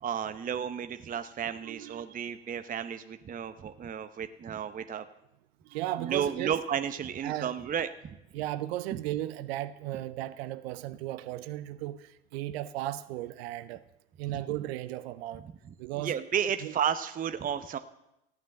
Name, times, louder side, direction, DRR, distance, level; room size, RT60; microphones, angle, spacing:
voice 1, 0.0-5.0 6.0-7.9 14.3-14.4 16.0-17.8, right 8 dB, 25° right, 0.8 m, -32 dB
voice 2, 1.6-2.2 5.6-6.5 7.2-7.5 8.3-13.8 14.2-15.5 15.8-16.1 16.6-16.7, right 14 dB, 65° right, 0.8 m, -35 dB
14.5 x 9.2 x 8.8 m
figure-of-eight pair, 70°, 34 cm